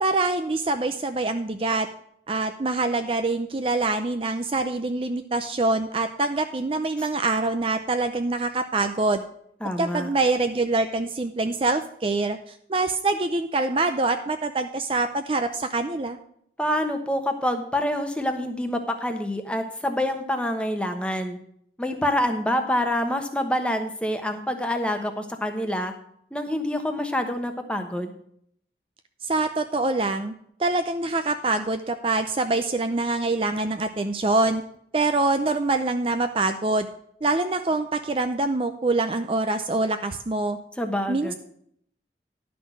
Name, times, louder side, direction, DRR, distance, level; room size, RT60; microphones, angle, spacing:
voice 1, 0.0-1.9 2.3-9.2 9.8-16.2 29.2-30.3 30.6-34.6 34.9-36.9 37.2-40.6 41.1-41.3, right 2 dB, 30° right, 8 dB, 0.5 m, -25 dB
voice 2, 9.6-10.1 16.6-21.4 21.8-25.9 26.3-28.1 40.8-41.3, left 1 dB, 5° left, 6 dB, 1.0 m, -26 dB
11.5 x 6.0 x 6.1 m, 0.67 s
head